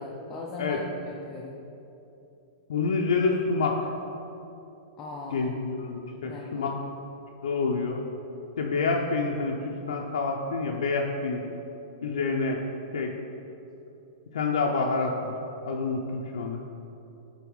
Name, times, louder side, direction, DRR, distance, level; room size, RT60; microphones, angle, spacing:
voice 1, 0.0-1.6 5.0-5.5 6.1-6.7, left 3 dB, 25° left, -1 dB, 0.4 m, -39 dB
voice 2, 2.7-3.9 5.3-6.7 7.4-8.0 8.6-11.4 12.0-12.6 12.9-13.1 14.3-15.3 15.7-16.6, left 4 dB, 85° left, 0 dB, 0.5 m, -27 dB
4.6 x 4.0 x 5.3 m, 2.9 s
hypercardioid pair, 155°, 3 cm